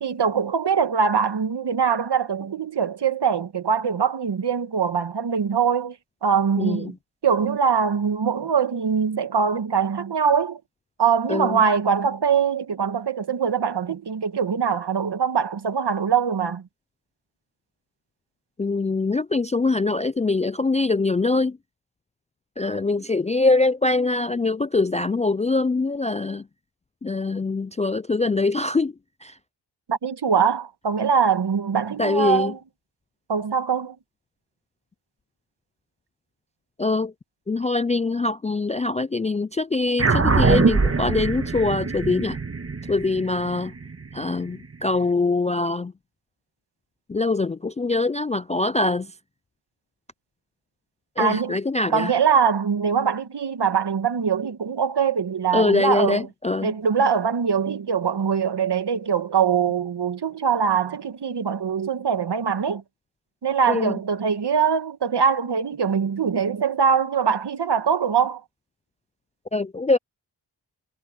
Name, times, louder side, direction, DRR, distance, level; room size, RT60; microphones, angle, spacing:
voice 1, 0.0-6.0 6.2-6.9 7.2-10.6 11.0-16.7 29.9-32.6 33.3-33.9 51.2-51.6 51.9-56.3 56.6-62.8 63.4-68.4, right 6 dB, 60° right, 1.7 m, -22 dB
voice 2, 11.3-11.6 18.6-21.6 22.6-26.4 27.0-28.9 29.2-29.3 32.0-32.5 36.8-37.1 37.5-42.4 42.9-43.7 44.1-45.9 47.1-49.1 51.2-52.1 55.5-56.7 63.7-64.0 69.5-70.0, left 3 dB, 15° left, 0.3 m, -23 dB
sound 1, 40.0-44.7, right 4 dB, 30° right, 1.5 m, -23 dB
cardioid pair, 60°, 45 cm